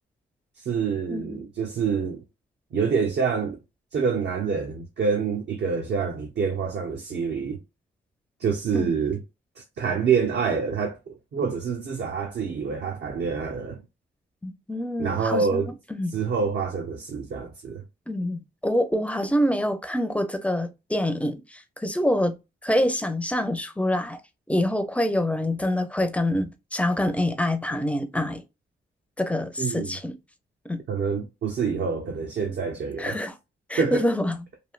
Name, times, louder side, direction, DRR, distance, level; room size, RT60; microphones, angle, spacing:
voice 1, 0.6-2.2 2.7-3.6 3.9-7.6 8.4-9.2 9.6-13.8 15.0-15.7 16.1-17.8 29.6-29.9 30.9-33.2 33.8-34.0, right 5 dB, 65° right, 0.6 m, -27 dB
voice 2, 1.1-1.4 8.7-8.9 14.4-16.2 18.1-22.4 22.6-24.2 24.5-28.4 29.2-30.1 30.7-30.8 33.0-33.3 33.7-34.4, left 1 dB, 5° left, 0.4 m, -26 dB
3.1 x 2.6 x 2.3 m
wide cardioid pair, 125°, 19 cm